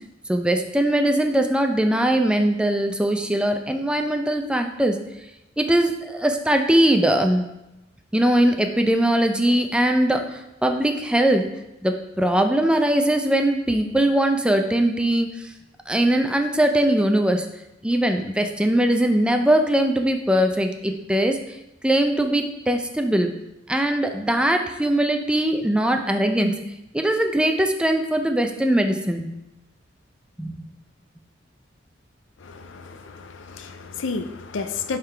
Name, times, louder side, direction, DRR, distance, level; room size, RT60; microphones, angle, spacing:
voice 1, 0.3-5.0 5.6-7.4 8.1-11.4 11.8-15.3 15.9-17.5 17.8-21.4 21.8-23.3 23.7-26.6 26.9-29.3 30.4-30.6, right 1 dB, 5° right, 5 dB, 0.4 m, -21 dB
voice 2, 32.4-35.0, left 4 dB, 80° left, 9 dB, 0.5 m, -32 dB
11.0 x 3.7 x 3.3 m, 0.92 s
head